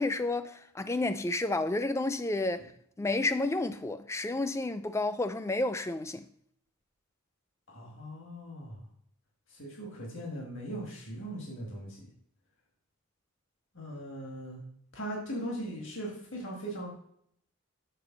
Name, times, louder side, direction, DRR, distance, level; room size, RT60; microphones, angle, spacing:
voice 1, 0.0-2.6 3.0-6.2, left 2 dB, 10° left, 0.3 m, -30 dB
voice 2, 7.7-8.8 9.5-12.1 13.7-14.6 14.9-16.9, right 1 dB, 55° left, 1.9 m, -39 dB
6.8 x 4.5 x 6.1 m
head